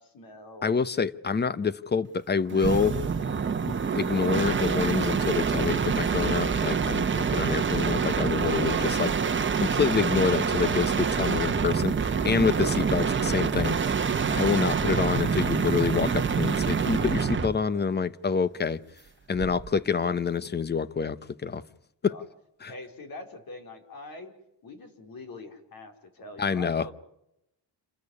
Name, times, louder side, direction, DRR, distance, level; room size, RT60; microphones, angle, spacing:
voice 1, 0.0-0.8 8.4-9.0 22.0-22.2 22.7-24.3 24.6-26.9, left 2 dB, 50° left, 4.7 m, -43 dB
voice 2, 0.6-3.0 3.7-9.1 9.6-13.8 14.3-18.8 19.3-21.6 22.0-22.1 22.6-22.7 26.4-26.8, left 5 dB, 25° left, 0.8 m, -27 dB
sound 1, 2.5-17.6 19.3-19.8, right 6 dB, 25° right, 1.2 m, -26 dB
28.5 x 13.5 x 9.6 m
cardioid pair, 150°, 43 cm